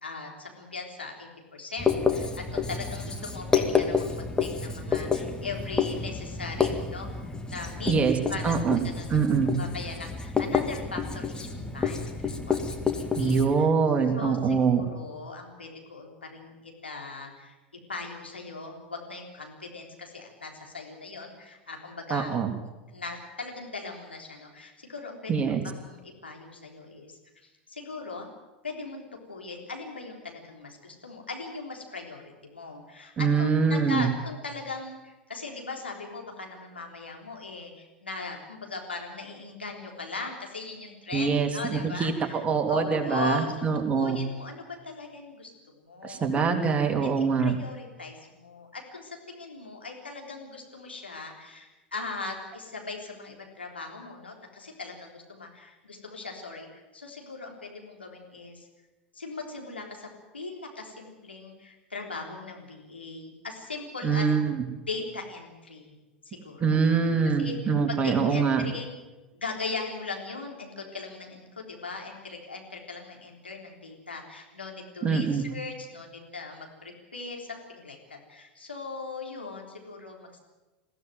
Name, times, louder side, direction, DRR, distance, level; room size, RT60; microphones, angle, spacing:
voice 1, 0.0-7.1 7.5-7.9 8.3-8.5 8.9-9.2 9.6-13.7 14.1-17.5 17.9-22.3 22.9-25.3 25.6-27.2 27.7-28.3 28.6-29.0 29.3-42.4 42.7-43.5 44.0-46.3 46.8-58.7 59.1-60.1 60.3-64.3 64.9-66.0 66.3-66.8 67.4-68.9 69.3-80.4, left 3 dB, 85° left, 1 dB, 3.7 m, -39 dB
Writing, 1.8-13.5, left 5 dB, 15° left, 2.1 m, -29 dB
voice 2, 7.9-8.2 8.4-8.8 9.1-9.5 13.2-14.9 22.1-22.5 25.3-25.6 33.2-34.1 41.1-44.2 46.0-47.6 64.0-64.6 66.6-68.6 75.0-75.4, right 5 dB, 25° right, 4 dB, 3.2 m, -24 dB
21.5 x 15.5 x 9.3 m, 1.1 s
figure-of-eight pair, 85°, 6 cm